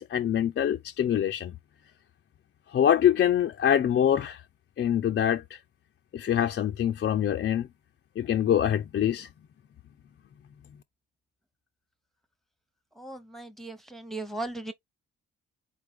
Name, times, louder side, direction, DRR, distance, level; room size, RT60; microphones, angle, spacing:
voice 1, 0.0-1.5 2.7-4.4 4.8-5.6 6.1-7.7 8.2-9.3, left 10 dB, 40° left, 0.5 m, -24 dB
voice 2, 13.0-14.7, right 2 dB, ahead, 0.9 m, -37 dB
4.1 x 3.3 x 3.6 m
hypercardioid pair, 50°, 30 cm